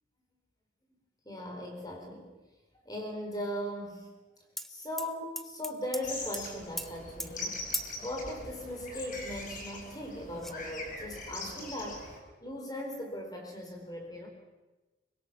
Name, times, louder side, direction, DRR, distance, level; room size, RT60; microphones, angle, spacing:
voice 1, 1.2-2.3 2.8-4.1 4.7-7.6 8.0-12.1 12.4-14.3, left 1 dB, 20° left, 2 dB, 4.3 m, -38 dB
sound 1, 4.6-4.7 5.0-6.0 6.3-6.5 6.8-6.9 7.2-7.3 7.7-8.0 8.9-9.0 9.3-10.0 10.4-10.5, equal, ahead, 0.8 m, -38 dB
sound 2, 6.0-12.2, left 2 dB, 45° left, 4.6 m, -42 dB
24.0 x 21.0 x 6.0 m, 1.2 s
head